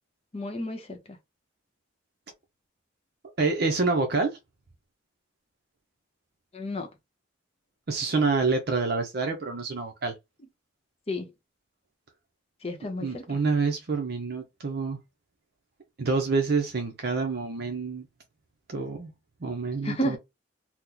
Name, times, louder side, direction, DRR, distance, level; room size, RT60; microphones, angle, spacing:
voice 1, 0.3-1.2 6.5-6.9 11.1-11.3 12.6-13.4 19.8-20.2, equal, 35° left, 0.7 m, -32 dB
voice 2, 3.4-4.4 7.9-10.1 13.0-15.0 16.0-18.0 18.7-19.1 19.4-20.2, right 4 dB, 55° right, 0.6 m, -27 dB
3.0 x 2.0 x 3.7 m
head